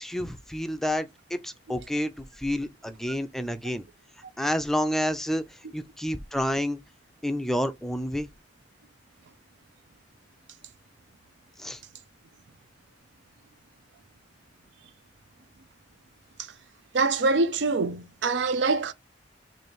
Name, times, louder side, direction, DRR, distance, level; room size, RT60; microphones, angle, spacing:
voice 1, 0.0-3.8 4.4-6.8 7.2-8.3 11.6-11.8, equal, ahead, 0.3 m, -29 dB
voice 2, 16.9-18.9, right 3 dB, 90° right, 0.5 m, -24 dB
3.1 x 2.6 x 4.1 m
head